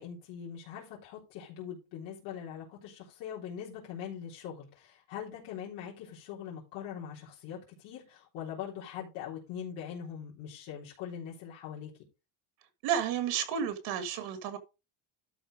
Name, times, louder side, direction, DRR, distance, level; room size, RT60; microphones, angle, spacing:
voice 1, 0.0-11.9, left 8 dB, 80° left, 3.8 m, -42 dB
voice 2, 12.8-14.6, right 8 dB, 65° right, 1.7 m, -31 dB
12.5 x 4.4 x 4.9 m
cardioid pair, 180°, 43 cm